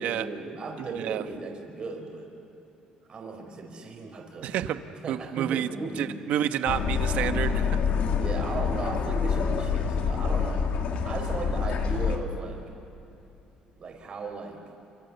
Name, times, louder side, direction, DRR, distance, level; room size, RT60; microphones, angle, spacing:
voice 1, 0.0-2.3 3.1-4.6 5.0-6.1 8.2-10.8 11.0-12.6 13.8-14.6, right 4 dB, 40° right, 2 dB, 4.6 m, -36 dB
voice 2, 0.8-1.2 4.4-4.8 5.1-5.7 6.0-7.8, right 11 dB, 75° right, 10 dB, 1.2 m, -29 dB
sound 1, 6.7-12.2, left 6 dB, 65° left, 2.5 m, -27 dB
29.0 x 25.5 x 7.1 m, 2.9 s
cardioid pair, 120°, 2 cm